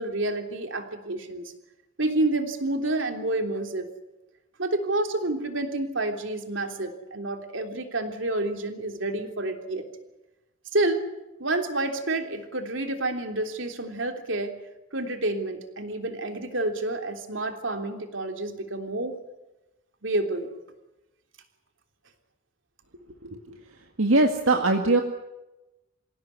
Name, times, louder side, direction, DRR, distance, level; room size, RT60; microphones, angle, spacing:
voice 1, 0.0-1.4 2.0-3.9 4.6-9.8 10.7-11.1 11.4-14.5 14.9-19.2 20.0-20.5, right 2 dB, 65° right, 5 dB, 3.4 m, -29 dB
voice 2, 23.2-23.6 24.0-25.0, right 2 dB, 80° right, 3 dB, 2.1 m, -22 dB
27.5 x 17.0 x 9.7 m, 0.99 s
head